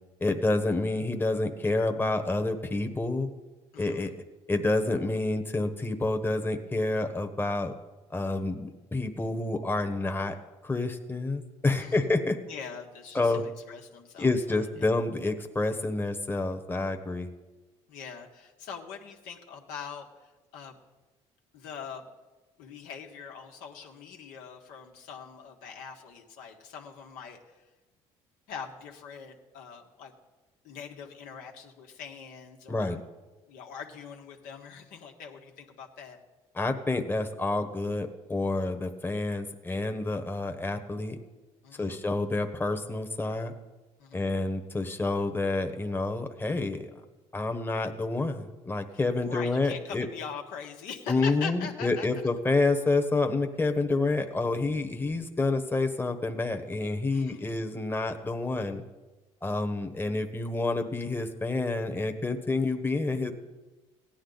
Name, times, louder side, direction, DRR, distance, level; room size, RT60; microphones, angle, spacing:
voice 1, 0.2-3.3 3.8-4.1 4.5-7.7 8.1-10.4 10.6-12.4 13.1-13.4 14.2-17.3 32.7-33.0 36.5-41.2 41.8-43.5 44.1-46.9 47.3-50.1 51.1-58.8 59.4-63.3, left 2 dB, 15° left, 6 dB, 1.1 m, -28 dB
voice 2, 3.7-4.2 11.8-12.1 12.5-14.9 17.9-20.8 21.5-22.1 22.6-27.7 28.5-30.1 30.6-33.0 33.5-36.2 41.6-42.0 44.0-44.3 48.9-52.1 57.1-57.5, left 6 dB, 80° left, 2 dB, 1.5 m, -43 dB
16.5 x 10.0 x 4.0 m, 1.2 s
supercardioid pair, 75°, 14 cm